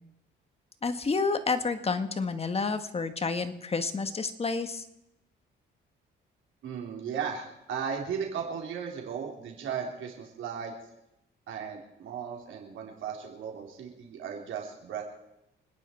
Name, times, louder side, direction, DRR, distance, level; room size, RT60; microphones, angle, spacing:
voice 1, 0.8-4.8, left 4 dB, 30° left, 9 dB, 1.5 m, -29 dB
voice 2, 6.6-10.7 11.5-15.0, right 7 dB, 75° right, 0 dB, 3.6 m, -36 dB
26.5 x 10.0 x 4.5 m, 0.86 s
cardioid pair, 90°, 20 cm